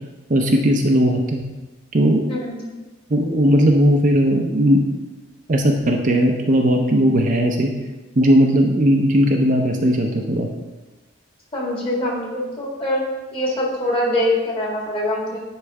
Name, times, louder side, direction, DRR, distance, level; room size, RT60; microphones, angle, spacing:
voice 1, 0.3-1.4 1.9-2.2 3.1-4.8 5.5-7.7 8.2-10.5, equal, 40° right, 2 dB, 0.6 m, -17 dB
voice 2, 2.3-2.6 11.5-13.0 13.3-15.4, left 1 dB, 25° left, -3 dB, 1.7 m, -23 dB
9.7 x 3.3 x 4.7 m, 1.2 s
head